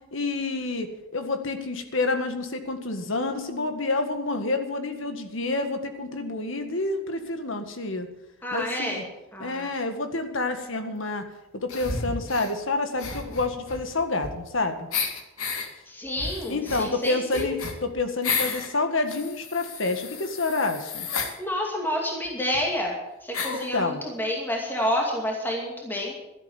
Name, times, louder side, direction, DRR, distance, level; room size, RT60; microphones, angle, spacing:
voice 1, 0.1-8.1 8.5-9.0 9.4-11.2 11.5-14.9 16.5-21.1 23.5-24.0, left 3 dB, 65° left, 7 dB, 1.8 m, -28 dB
voice 2, 8.4-9.1 9.3-9.7 15.9-17.6 21.4-22.9 23.2-26.1, left 1 dB, 10° left, -1 dB, 2.5 m, -29 dB
sound 1, 11.7-12.5 13.0-14.6 14.9-15.7 16.2-18.7 19.1-21.3 22.2-22.3 22.5-22.6 23.3-23.7, left 5 dB, 85° left, 2.2 m, -32 dB
12.5 x 11.0 x 7.2 m, 0.95 s
head